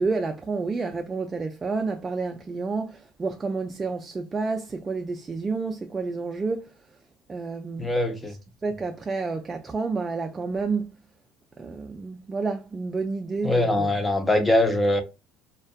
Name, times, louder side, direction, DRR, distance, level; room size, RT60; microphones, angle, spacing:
voice 1, 0.0-6.7 7.3-7.9 8.6-10.9 11.6-13.9, right 4 dB, 25° right, 0.3 m, -29 dB
voice 2, 7.8-8.4 13.4-15.0, left 1 dB, 15° left, 0.6 m, -22 dB
2.4 x 2.2 x 2.4 m
supercardioid pair, 85°, 0 cm